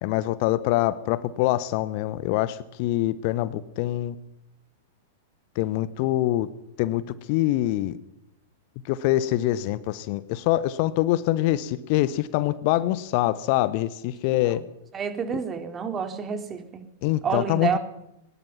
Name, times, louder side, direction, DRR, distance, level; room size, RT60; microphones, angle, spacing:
voice 1, 0.0-4.1 5.5-6.5 6.8-7.0 7.3-7.9 8.8-14.6 17.0-17.8, left 15 dB, 45° left, 16 dB, 1.1 m, -24 dB
voice 2, 14.9-16.8 17.2-17.8, right 6 dB, 20° right, 7 dB, 3.2 m, -29 dB
22.0 x 20.0 x 5.9 m, 0.84 s
figure-of-eight pair, 95°, 0 cm